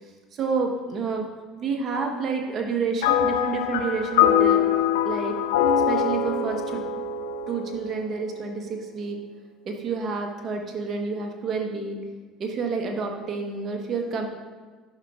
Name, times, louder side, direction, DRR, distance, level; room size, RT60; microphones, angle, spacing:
voice 1, 0.3-1.3 1.5-4.6 5.0-5.4 5.9-6.8 7.5-9.2 9.6-12.0 12.4-14.3, right 4 dB, 50° right, 3 dB, 1.3 m, -29 dB
sound 1, 3.0-8.5, left 8 dB, 85° left, 0.4 m, -23 dB
11.0 x 6.2 x 2.5 m, 1.4 s
hypercardioid pair, 80°, 0 cm